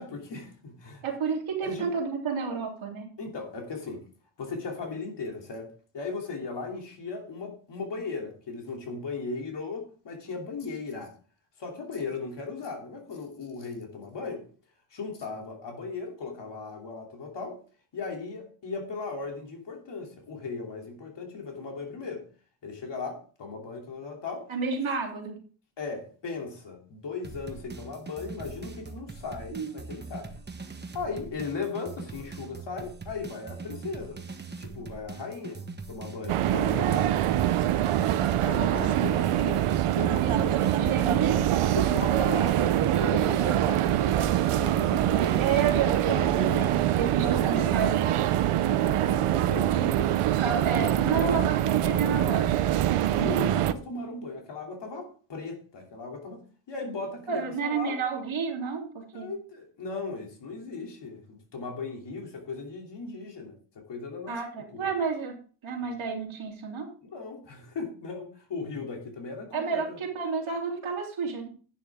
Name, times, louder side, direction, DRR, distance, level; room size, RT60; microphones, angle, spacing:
voice 1, 0.0-1.0 1.6-1.9 3.2-4.0 4.4-11.1 11.6-14.4 14.9-17.6 17.9-22.3 22.6-24.5 25.8-30.4 30.9-34.2 34.6-35.6 35.9-37.3 38.4-39.7 40.0-40.6 41.7-45.6 46.0-46.7 47.2-47.8 48.7-50.3 50.7-51.5 52.9-56.4 56.7-58.0 59.1-64.9 67.0-70.0, left 4 dB, 55° left, 3.0 m, -37 dB
voice 2, 1.0-3.1 24.5-25.4 29.5-29.7 38.8-38.9 40.1-41.5 45.4-48.4 50.3-52.8 57.3-59.3 64.3-66.9 69.5-71.5, right 5 dB, 70° right, 3.2 m, -31 dB
sound 1, 27.2-45.7, right 4 dB, 20° right, 1.2 m, -42 dB
sound 2, 36.3-53.7, right 12 dB, 85° right, 0.8 m, -24 dB
11.0 x 9.1 x 3.6 m
wide cardioid pair, 160°, 50 cm